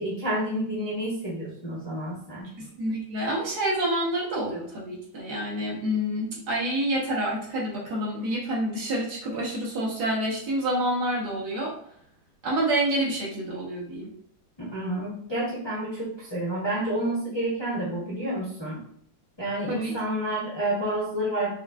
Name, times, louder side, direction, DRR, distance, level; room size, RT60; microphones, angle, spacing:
voice 1, 0.0-2.5 14.7-18.8 19.4-21.5, right 1 dB, 35° left, -7 dB, 0.4 m, -29 dB
voice 2, 2.8-11.7 12.4-14.1 19.7-19.9, right 1 dB, 60° right, -3 dB, 1.6 m, -28 dB
4.9 x 2.5 x 2.3 m, 0.62 s
omnidirectional pair, 2.1 m